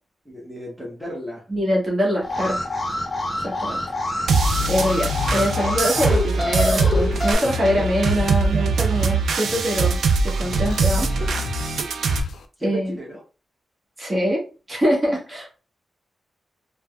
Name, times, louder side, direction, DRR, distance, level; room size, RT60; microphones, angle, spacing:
voice 1, 0.2-1.4 12.6-13.2, equal, 5° right, -4 dB, 0.9 m, -33 dB
voice 2, 1.5-2.6 3.4-3.8 4.7-10.0 10.2-11.4 12.6-12.9 14.0-15.5, equal, 30° right, -3 dB, 1.0 m, -24 dB
Alarm, 2.2-7.3, left 2 dB, 25° left, 0.6 m, -26 dB
sound 1, 4.3-12.2, right 4 dB, 80° right, 0.3 m, -22 dB
sound 2, 4.5-12.5, left 4 dB, 85° left, 0.3 m, -32 dB
3.3 x 2.0 x 2.2 m, 0.33 s
wide cardioid pair, 135°, 0 cm